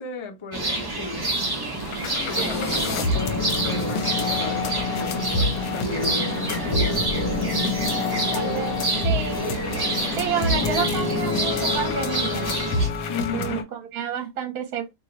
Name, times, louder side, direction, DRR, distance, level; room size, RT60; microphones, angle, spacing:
voice 1, 0.0-1.3 2.3-3.1 3.6-7.1 13.1-13.7, left 3 dB, 40° left, 0.4 m, -35 dB
sound 1, 0.5-12.9, right 2 dB, 20° right, 0.7 m, -28 dB
sound 2, 1.4-1.5 1.7-13.6, left 3 dB, 65° left, 1.1 m, -27 dB
voice 2, 2.4-2.8 5.3-5.7 8.0-9.5 10.2-12.6 13.3-14.9, right 8 dB, 65° right, 1.2 m, -30 dB
3.0 x 2.8 x 3.8 m
omnidirectional pair, 1.7 m